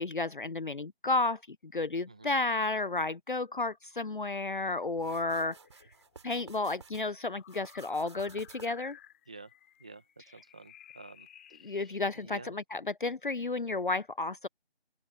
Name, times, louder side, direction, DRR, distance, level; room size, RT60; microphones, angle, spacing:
voice 1, 0.0-5.6 6.2-9.0 11.6-14.5, left 3 dB, 50° left, 0.6 m, -32 dB
voice 2, 2.1-2.4 9.3-9.5 9.8-12.5, right 3 dB, 5° right, 1.2 m, -51 dB
sound 1, 4.9-12.3, left 11 dB, 15° left, 4.7 m, -58 dB
sound 2, 5.0-7.1 7.5-8.9, right 5 dB, 25° right, 7.5 m, -54 dB
open air
figure-of-eight pair, 170°, 32 cm